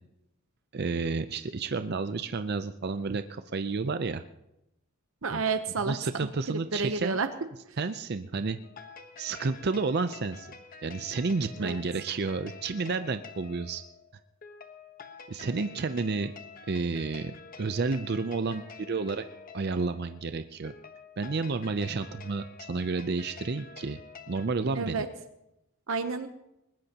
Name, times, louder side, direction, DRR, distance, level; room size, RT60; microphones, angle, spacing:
voice 1, 0.7-4.2 5.3-5.4 5.9-7.2 7.8-8.6 9.2-10.5 10.8-13.8 15.3-16.3 16.7-17.3 17.6-19.2 19.5-20.7 21.2-24.0 24.3-25.0, right 4 dB, 50° right, 10 dB, 0.5 m, -31 dB
voice 2, 5.2-6.0 6.5-7.3 11.6-11.8 24.7-25.1 25.9-26.3, right 4 dB, 75° right, 8 dB, 0.8 m, -30 dB
sound 1, 8.6-24.5, left 5 dB, 45° left, 1.1 m, -48 dB
20.0 x 20.0 x 2.9 m, 0.87 s
head